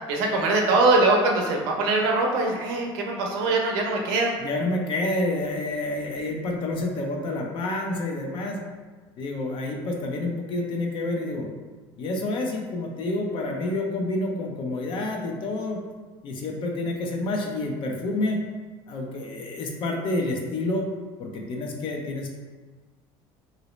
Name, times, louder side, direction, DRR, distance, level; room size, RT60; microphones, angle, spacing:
voice 1, 0.1-4.3, right 2 dB, 90° right, 0 dB, 0.6 m, -22 dB
voice 2, 4.4-8.6 9.2-11.5 12.0-15.8 16.2-18.4 18.9-20.9 21.2-22.3, left 2 dB, 50° left, 1 dB, 0.6 m, -28 dB
3.0 x 2.7 x 3.1 m, 1.4 s
cardioid pair, 120°, 11 cm